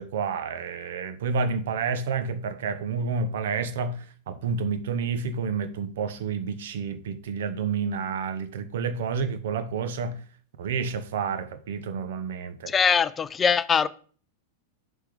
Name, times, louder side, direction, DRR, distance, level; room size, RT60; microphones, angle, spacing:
voice 1, 0.0-10.2 10.6-12.7, right 5 dB, 75° right, 0.8 m, -29 dB
voice 2, 12.7-13.9, left 6 dB, 20° left, 0.4 m, -22 dB
6.8 x 3.6 x 5.0 m
supercardioid pair, 140°, 0 cm